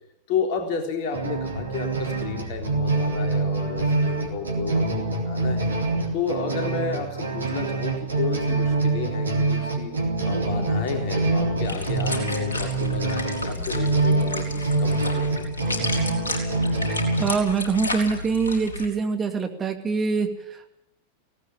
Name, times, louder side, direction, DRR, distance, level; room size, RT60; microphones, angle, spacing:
voice 1, 0.3-5.7 6.1-9.9 10.2-15.5, left 5 dB, 45° left, 3 dB, 3.6 m, -31 dB
sound 1, 1.1-17.2, right 3 dB, 75° right, 3.7 m, -25 dB
sound 2, 11.0-18.9, left 2 dB, 70° left, 4.0 m, -33 dB
voice 2, 17.2-20.3, right 5 dB, 20° right, 5 dB, 2.4 m, -24 dB
18.5 x 17.5 x 8.4 m, 0.79 s
figure-of-eight pair, 90°, 0 cm